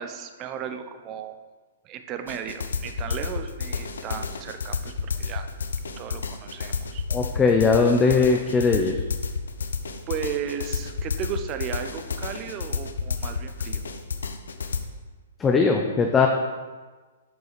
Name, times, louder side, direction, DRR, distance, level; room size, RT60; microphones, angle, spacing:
voice 1, 0.0-1.3 1.8-5.5 6.0-7.0 10.1-13.8, right 8 dB, 30° right, 8 dB, 0.8 m, -35 dB
sound 1, 2.3-14.8, left 5 dB, 80° left, 0.8 m, -30 dB
voice 2, 7.1-9.0 15.4-16.3, left 4 dB, 15° left, 2 dB, 0.7 m, -20 dB
8.2 x 4.7 x 6.0 m, 1.3 s
hypercardioid pair, 130°, 0 cm